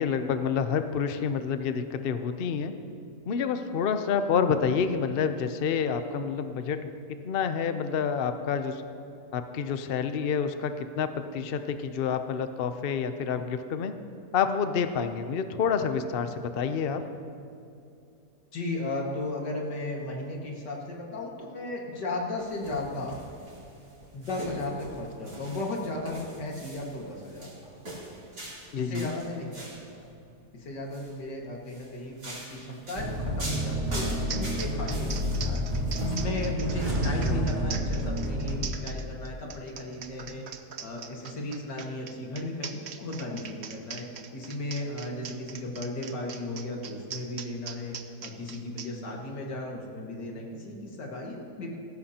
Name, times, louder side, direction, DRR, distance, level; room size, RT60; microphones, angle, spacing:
voice 1, 0.0-2.7 3.3-8.8 9.3-14.0 14.3-17.0 28.7-29.1 37.2-37.5, left 6 dB, 55° left, 9 dB, 0.6 m, -28 dB
voice 2, 18.5-23.2 24.1-27.5 28.7-29.7 29.9-30.1 30.5-40.4 40.8-47.9 48.2-51.7, left 2 dB, 90° left, -1 dB, 2.5 m, -35 dB
sound 1, 22.4-29.9 30.7-31.1 31.7-36.2, right 1 dB, 75° right, 4.1 m, -42 dB
sound 2, 33.0-38.7, equal, 30° right, 1.7 m, -29 dB
sound 3, 33.9-34.0 34.3-48.9, right 7 dB, 55° right, 0.8 m, -41 dB
18.5 x 15.5 x 2.9 m, 2.6 s
omnidirectional pair, 1.8 m